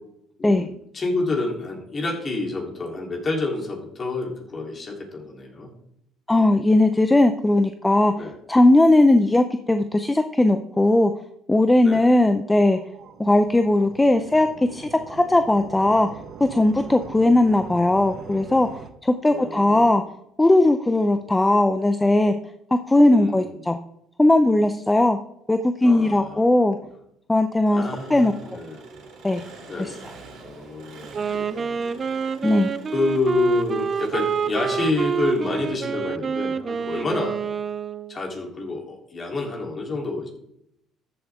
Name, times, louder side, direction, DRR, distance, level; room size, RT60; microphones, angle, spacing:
voice 1, 0.4-5.7 8.2-8.4 11.8-12.0 19.3-19.9 23.1-23.6 25.8-26.4 26.8-26.9 27.7-28.8 29.7-32.0 32.9-37.4 38.1-40.3, left 3 dB, 35° left, 0 dB, 3.3 m, -28 dB
voice 2, 6.3-11.1 11.5-12.8 13.2-16.1 16.4-18.7 19.0-20.0 20.4-22.3 22.7-23.8 24.2-25.2 25.5-26.8 27.3-27.8 28.1-28.3 29.2-29.4 29.8-29.9 32.4-32.7, left 1 dB, 10° left, 8 dB, 0.5 m, -18 dB
sound 1, 12.4-18.9, right 7 dB, 55° right, 0.9 m, -42 dB
Engine, 27.8-35.9, right 4 dB, 75° right, 3.3 m, -46 dB
Wind instrument woodwind instrument, 31.0-38.2, right 6 dB, 35° right, 0.5 m, -27 dB
14.0 x 7.5 x 3.6 m, 0.77 s
cardioid pair, 105°, 0 cm